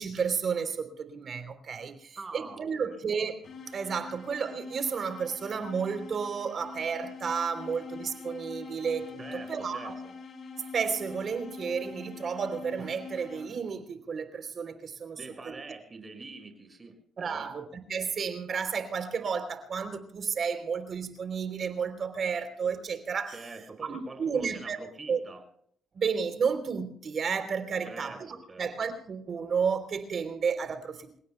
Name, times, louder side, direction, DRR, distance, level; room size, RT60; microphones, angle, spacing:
voice 1, 0.0-3.4 3.7-9.9 10.6-15.2 15.4-15.6 17.2-23.4 23.8-24.8 25.1-25.2 25.9-31.2, right 6 dB, 50° right, 8 dB, 3.4 m, -32 dB
voice 2, 2.2-3.0 9.2-10.1 15.2-17.5 23.3-25.4 27.8-28.7, right 3 dB, 30° right, 5 dB, 5.8 m, -45 dB
sound 1, 3.4-13.8, left 4 dB, 55° left, 5.5 m, -44 dB
28.0 x 17.0 x 2.3 m, 0.64 s
cardioid pair, 90°, 0 cm